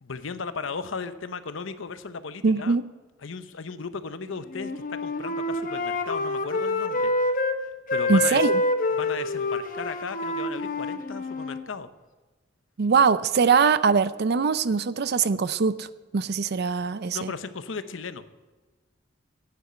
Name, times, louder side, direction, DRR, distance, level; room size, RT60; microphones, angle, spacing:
voice 1, 0.0-2.8 3.2-7.4 7.9-8.5 9.0-11.9 17.1-18.2, left 5 dB, 80° left, 12 dB, 0.8 m, -36 dB
voice 2, 2.4-2.8 8.1-8.5 12.8-15.9 16.1-17.3, right 5 dB, 55° right, 15 dB, 0.5 m, -22 dB
Wind instrument woodwind instrument, 4.5-7.6 7.9-11.7, left 2 dB, 45° left, 0.9 m, -27 dB
9.3 x 8.1 x 8.8 m, 1.3 s
head